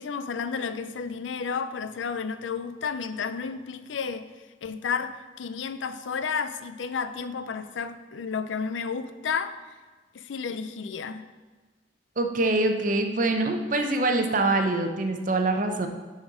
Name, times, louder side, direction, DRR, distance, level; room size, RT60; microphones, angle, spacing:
voice 1, 0.0-4.3 4.6-9.6 10.1-11.3, left 5 dB, 90° left, 12 dB, 0.5 m, -32 dB
voice 2, 12.2-15.9, right 2 dB, 45° right, 5 dB, 0.8 m, -24 dB
8.6 x 4.3 x 6.0 m, 1.3 s
head